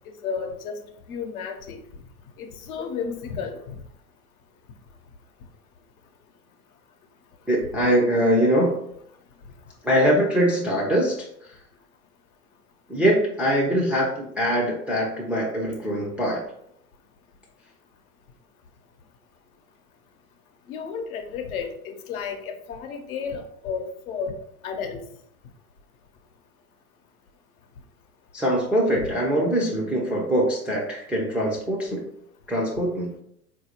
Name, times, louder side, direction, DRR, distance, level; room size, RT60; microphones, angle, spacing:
voice 1, 0.2-0.7 1.1-1.8 2.4-3.6 20.7-24.4 24.6-25.0, left 6 dB, 65° left, 4 dB, 0.8 m, -32 dB
voice 2, 7.5-8.8 9.8-11.3 12.9-16.5 28.3-32.1 32.5-33.1, equal, 5° right, -4 dB, 0.4 m, -23 dB
3.9 x 2.6 x 2.9 m, 0.70 s
hypercardioid pair, 90°, 46 cm